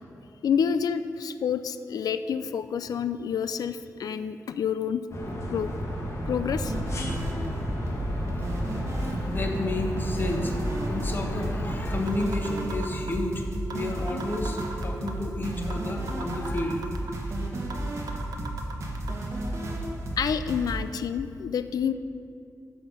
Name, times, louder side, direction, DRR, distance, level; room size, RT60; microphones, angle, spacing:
voice 1, 0.4-5.0 5.5-5.7 6.2-6.8 20.2-21.9, left 7 dB, 80° left, 11 dB, 0.4 m, -28 dB
sound 1, 5.1-12.0, left 1 dB, 50° left, 1.4 m, -32 dB
sound 2, 6.6-20.7, right 1 dB, 50° right, 1.4 m, -33 dB
voice 2, 9.0-10.5 10.9-13.4 13.7-16.8 17.3-17.4, left 1 dB, 30° left, 2 dB, 1.0 m, -31 dB
sound 3, 11.7-11.8 12.1-13.3 13.7-13.8 14.1-15.3 15.7-15.8 16.1-17.3 17.7-17.8 18.1-19.1, right 4 dB, 85° right, 0.9 m, -39 dB
13.0 x 5.0 x 5.5 m, 2.6 s
wide cardioid pair, 165°, 6 cm